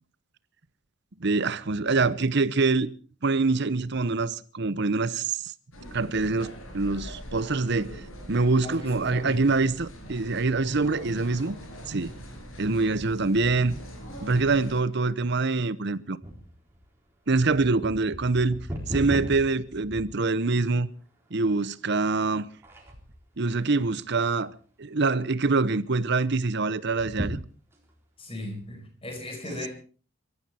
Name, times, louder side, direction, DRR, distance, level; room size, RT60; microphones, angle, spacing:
voice 1, 1.2-2.9 3.2-5.5 5.9-8.0 8.3-11.5 11.9-12.1 12.6-13.8 14.2-16.2 17.3-18.6 18.9-20.9 21.3-22.5 23.4-24.5 24.8-27.4, right 3 dB, 55° right, 0.9 m, -25 dB
sound 1, 5.7-14.8, equal, 80° left, 6.0 m, -42 dB
voice 2, 8.6-9.5 28.2-29.7, left 1 dB, 25° left, 5.0 m, -37 dB
sound 2, 16.2-20.7 21.3-21.4 22.0-22.3 22.6-23.3 23.8-24.5 24.9-25.0 25.2-25.3 26.8-28.0 28.6-28.7, equal, 10° right, 4.2 m, -37 dB
23.0 x 14.0 x 4.4 m
head